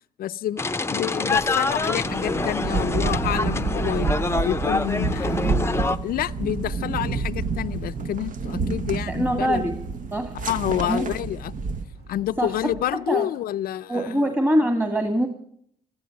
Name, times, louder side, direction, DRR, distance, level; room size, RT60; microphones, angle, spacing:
voice 1, 0.2-0.6 0.9-4.1 4.4-5.5 6.0-9.6 10.3-11.5 12.1-14.2, left 12 dB, 70° left, 0.5 m, -28 dB
sound 1, 0.6-6.0, left 3 dB, 15° left, 0.6 m, -26 dB
sound 2, 1.3-12.8, right 2 dB, 90° right, 1.5 m, -44 dB
sound 3, 2.0-11.8, right 4 dB, 60° right, 1.1 m, -28 dB
voice 2, 9.1-9.8 10.1-10.3 10.8-11.1 12.4-12.6 12.9-13.3 13.9-15.3, right 1 dB, 15° right, 1.8 m, -23 dB
16.5 x 13.5 x 6.4 m
cardioid pair, 75°, 16 cm